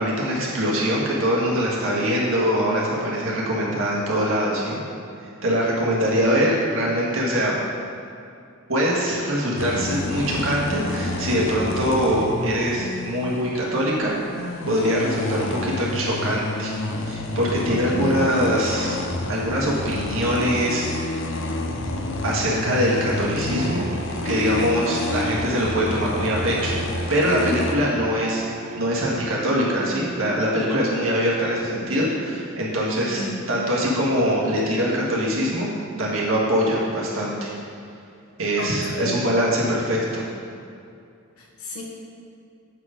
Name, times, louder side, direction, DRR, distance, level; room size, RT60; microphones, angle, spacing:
voice 1, 0.0-4.8 5.2-7.5 8.7-16.7 17.0-19.0 19.3-21.3 22.2-23.9 24.2-26.8 27.1-28.4 28.7-33.2 33.5-35.7 36.0-37.5 38.4-40.2, equal, 65° right, -5 dB, 1.8 m, -23 dB
sound 1, 9.6-27.8, left 2 dB, 60° left, 0.6 m, -29 dB
voice 2, 17.7-18.2 33.1-33.4 38.6-39.2 41.4-41.8, right 1 dB, 85° left, -2 dB, 1.5 m, -31 dB
Bowed string instrument, 23.5-29.3, right 4 dB, 40° right, 0.4 m, -38 dB
8.1 x 5.0 x 5.1 m, 2.5 s
head